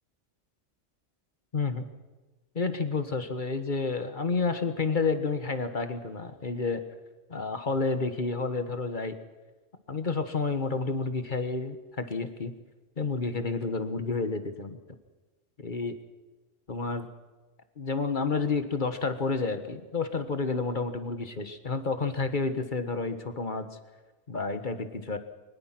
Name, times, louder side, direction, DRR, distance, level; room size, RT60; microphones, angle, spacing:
voice 1, 1.5-1.9 2.5-6.8 7.3-9.2 9.9-12.5 13.0-14.8 15.6-16.0 16.7-17.1 17.8-23.7 24.3-25.2, left 4 dB, 45° left, 9 dB, 1.5 m, -30 dB
23.0 x 20.5 x 6.0 m, 1.2 s
omnidirectional pair, 1.2 m